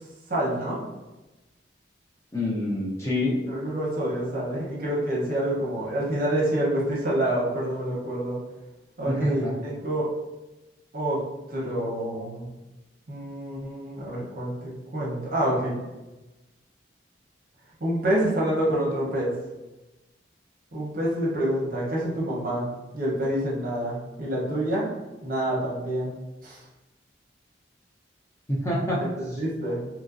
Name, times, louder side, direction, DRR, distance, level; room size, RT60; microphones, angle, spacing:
voice 1, 0.3-0.8 3.5-8.4 9.0-10.1 10.9-11.2 11.5-12.5 13.1-15.8 17.8-19.3 20.7-22.7 22.9-24.9 25.2-26.1 26.4-26.6 29.0-29.8, right 1 dB, 50° right, -4 dB, 0.8 m, -27 dB
voice 2, 2.3-3.4 9.1-9.5 28.5-29.0, left 1 dB, 15° left, -5 dB, 0.5 m, -26 dB
3.0 x 2.5 x 2.4 m, 1.1 s
head